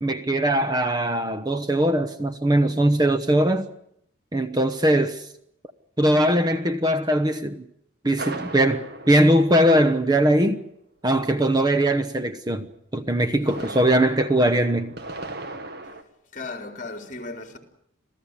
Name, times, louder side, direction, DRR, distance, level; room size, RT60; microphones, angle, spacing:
voice 1, 0.0-3.7 4.3-5.3 6.0-7.6 8.0-10.6 11.0-14.9, right 1 dB, 20° right, 1.0 m, -21 dB
sound 1, 8.2-10.3 13.2-16.0, right 2 dB, 55° right, 2.0 m, -37 dB
voice 2, 16.3-17.6, left 3 dB, 40° left, 3.8 m, -36 dB
27.0 x 16.5 x 9.7 m
head